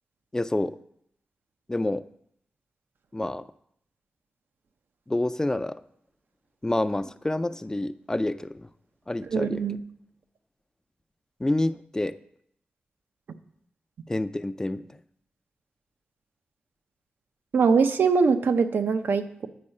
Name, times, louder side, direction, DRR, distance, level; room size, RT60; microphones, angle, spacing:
voice 1, 0.3-0.8 1.7-2.0 3.1-3.4 5.1-5.8 6.6-8.7 9.1-9.6 11.4-12.1 14.1-14.8, left 1 dB, 20° left, 13 dB, 0.3 m, -28 dB
voice 2, 9.3-9.8 17.5-19.5, right 5 dB, 80° right, 8 dB, 0.5 m, -22 dB
8.6 x 4.7 x 5.4 m, 0.70 s
cardioid pair, 65°, 3 cm